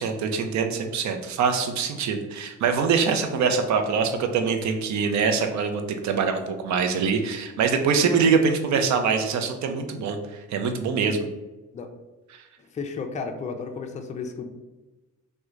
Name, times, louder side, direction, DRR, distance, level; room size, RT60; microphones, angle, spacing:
voice 1, 0.0-11.3, right 5 dB, 65° right, 5 dB, 0.5 m, -24 dB
voice 2, 12.7-14.4, left 5 dB, 25° left, 5 dB, 0.4 m, -33 dB
3.1 x 2.2 x 3.6 m, 1.1 s
cardioid pair, 90°, 30 cm